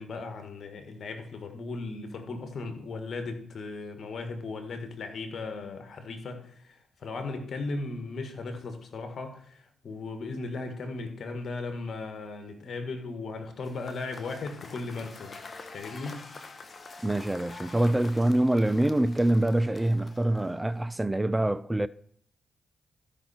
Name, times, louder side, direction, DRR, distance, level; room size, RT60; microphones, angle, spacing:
voice 1, 0.0-15.4 15.7-16.2, left 3 dB, 60° left, 1.8 m, -37 dB
Cheering / Applause / Crowd, 13.6-20.7, left 3 dB, 40° left, 1.4 m, -47 dB
voice 2, 17.0-21.9, right 1 dB, 15° right, 0.4 m, -25 dB
13.5 x 5.8 x 4.4 m
supercardioid pair, 50°, 0 cm